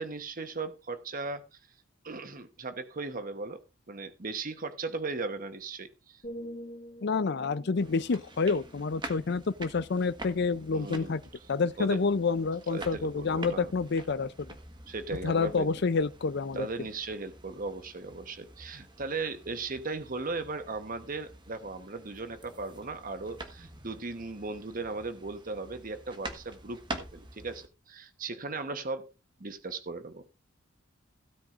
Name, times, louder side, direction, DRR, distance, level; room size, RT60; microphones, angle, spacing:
voice 1, 0.0-1.6 2.0-6.2 10.7-11.2 11.8-12.0 12.7-13.7 14.9-15.7 16.5-29.1 29.4-30.2, right 3 dB, 45° right, 1.1 m, -37 dB
sound 1, 6.2-10.1 10.6-10.9, equal, 40° left, 2.3 m, -47 dB
voice 2, 7.0-11.2 11.5-14.5 15.2-16.7, left 4 dB, 60° left, 0.5 m, -28 dB
sound 2, 7.8-27.7, right 2 dB, 25° right, 1.5 m, -47 dB
16.5 x 9.0 x 2.5 m
head